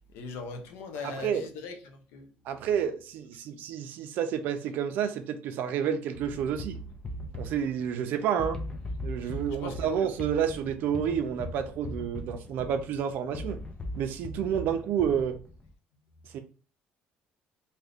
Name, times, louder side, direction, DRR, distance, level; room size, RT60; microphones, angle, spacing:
voice 1, 0.1-2.3 9.2-9.9, left 4 dB, 85° left, 0.7 m, -40 dB
voice 2, 1.0-1.4 2.5-6.8 7.3-8.6 9.0-13.6 14.0-15.4 16.3-16.4, right 8 dB, 60° right, 0.5 m, -30 dB
sound 1, 6.1-15.7, left 1 dB, 15° left, 0.4 m, -39 dB
2.7 x 2.5 x 3.4 m
cardioid pair, 170°, 4 cm